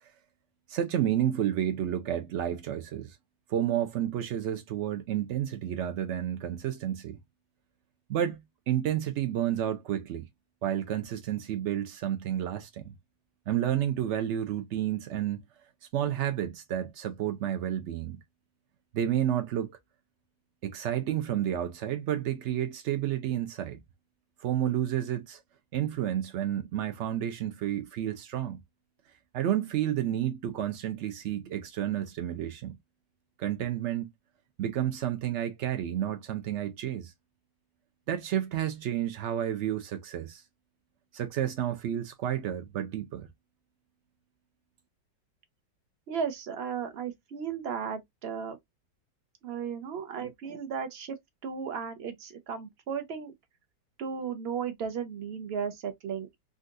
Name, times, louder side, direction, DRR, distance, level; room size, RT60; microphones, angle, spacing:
voice 1, 0.7-3.2 3.5-7.2 8.1-10.3 10.6-12.9 13.5-15.4 15.9-18.2 18.9-19.8 20.6-23.8 24.4-25.4 25.7-28.6 29.3-32.8 33.4-34.1 34.6-37.1 38.1-40.4 41.1-43.3, right 11 dB, 80° right, 0.6 m, -30 dB
voice 2, 46.1-48.6 49.4-51.2 51.4-53.3 54.0-56.4, right 7 dB, 50° right, 0.8 m, -35 dB
3.9 x 2.4 x 2.4 m
omnidirectional pair, 1.9 m